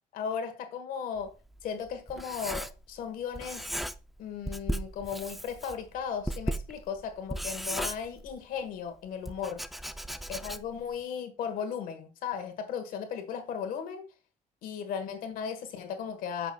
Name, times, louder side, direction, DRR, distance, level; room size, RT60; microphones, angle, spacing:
voice 1, 0.1-1.3 1.6-3.8 4.2-9.6 10.3-14.1 14.6-16.5, left 7 dB, 85° left, 1.5 m, -36 dB
Writing, 1.2-3.1 3.3-4.2 4.5-8.6 9.3-10.9, right 1 dB, ahead, 0.5 m, -36 dB
8.4 x 6.1 x 2.3 m
cardioid pair, 80°, 14 cm